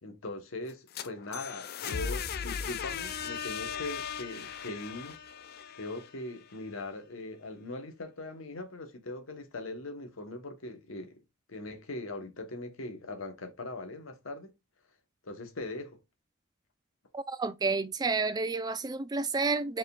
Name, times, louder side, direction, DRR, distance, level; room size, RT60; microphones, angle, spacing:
voice 1, 0.0-5.2 5.7-11.2 11.5-14.5 15.2-16.0, left 2 dB, 85° left, 1.0 m, -40 dB
sound 1, 0.7-6.6, left 7 dB, 50° left, 0.4 m, -38 dB
voice 2, 17.1-19.8, right 4 dB, 20° right, 0.4 m, -30 dB
4.5 x 3.6 x 2.3 m
head